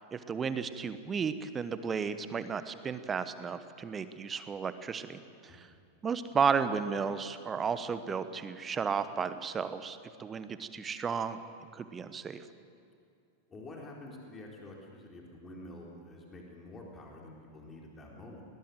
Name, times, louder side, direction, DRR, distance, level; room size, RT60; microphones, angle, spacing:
voice 1, 0.1-5.7 6.0-11.4 11.7-12.4, right 6 dB, 20° right, 12 dB, 1.2 m, -33 dB
voice 2, 13.5-18.4, left 1 dB, 20° left, -1 dB, 4.1 m, -48 dB
21.0 x 19.5 x 7.8 m, 2.5 s
figure-of-eight pair, 90°, 0 cm